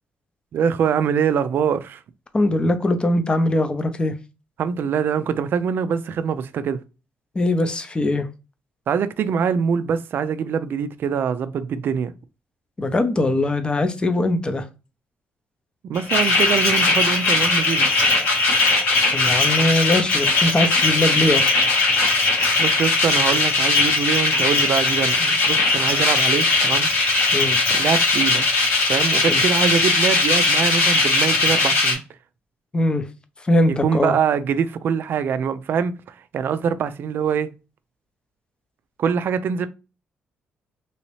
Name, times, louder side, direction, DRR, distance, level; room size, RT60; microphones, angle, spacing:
voice 1, 0.5-2.0 4.6-6.8 8.9-12.1 15.9-17.9 22.6-26.9 27.7-28.5 28.9-32.0 33.7-35.9 36.3-37.5 39.0-39.7, right 7 dB, 60° right, 0.4 m, -23 dB
voice 2, 2.3-4.1 7.3-8.3 12.8-14.7 19.1-21.6 27.3-27.6 29.3-29.4 32.7-33.1 33.4-34.2, left 1 dB, 25° left, 0.6 m, -21 dB
sound 1, 15.9-32.0, left 3 dB, 85° left, 1.4 m, -19 dB
3.1 x 2.8 x 3.0 m
cardioid pair, 90°, 4 cm